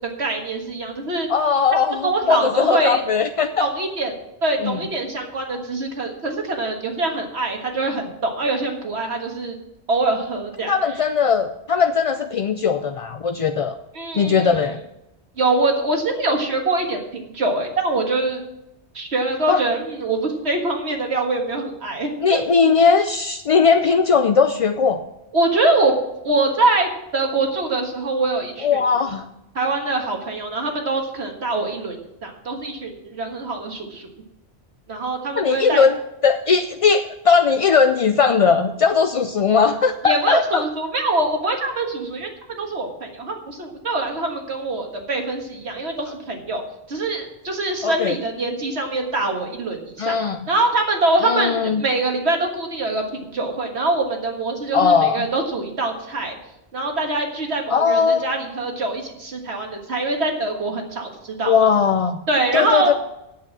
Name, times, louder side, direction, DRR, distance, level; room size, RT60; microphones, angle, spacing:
voice 1, 0.2-1.3 2.0-3.0 3.6-9.6 9.9-10.7 14.0-14.6 15.4-18.4 18.9-22.4 25.3-26.0 26.2-28.8 29.6-34.1 34.9-35.9 40.0-42.3 42.6-46.6 46.9-50.2 50.5-56.4 56.7-61.7 62.3-62.9, right 2 dB, 75° right, 3 dB, 1.9 m, -24 dB
voice 2, 1.3-3.7 4.6-4.8 10.7-13.8 14.1-14.8 19.5-19.6 22.2-25.0 28.6-29.3 35.4-40.6 47.8-48.2 50.0-50.4 51.2-51.8 54.7-55.3 57.7-58.2 61.4-62.2 62.5-62.9, left 6 dB, 55° left, 8 dB, 0.3 m, -18 dB
8.5 x 7.8 x 7.2 m, 0.87 s
omnidirectional pair, 1.1 m